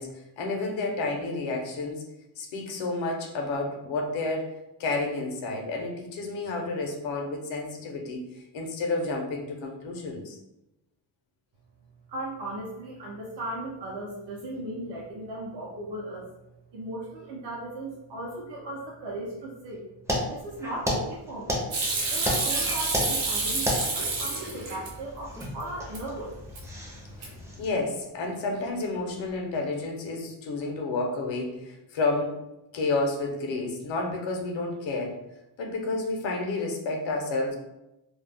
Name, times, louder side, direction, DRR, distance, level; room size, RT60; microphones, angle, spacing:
voice 1, 0.0-2.1 2.4-4.5 4.8-10.4 27.2-32.4 32.7-35.2 35.6-37.6, left 3 dB, 85° left, 2 dB, 0.7 m, -30 dB
voice 2, 12.1-16.2 16.7-19.9 20.3-21.6 22.1-26.4, right 1 dB, 60° right, -4 dB, 0.6 m, -37 dB
sound 1, 20.1-27.8, left 1 dB, 5° right, 0.4 m, -33 dB
Hands / Sink (filling or washing), 21.7-24.9 25.3-26.0 26.3-26.8 27.1-27.6, right 3 dB, 90° right, 0.9 m, -29 dB
2.3 x 2.0 x 3.3 m, 0.93 s
cardioid pair, 115°, 46 cm